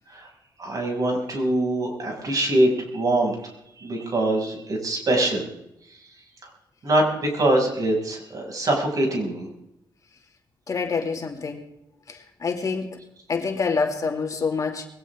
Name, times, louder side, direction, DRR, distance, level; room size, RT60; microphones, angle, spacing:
voice 1, 0.6-3.4 3.8-5.4 6.8-9.5, right 1 dB, 50° right, 1 dB, 6.5 m, -23 dB
voice 2, 10.7-11.6 12.1-13.0 13.3-14.9, left 5 dB, 45° left, 3 dB, 2.5 m, -27 dB
21.0 x 17.5 x 3.7 m, 0.79 s
cardioid pair, 105°, 8 cm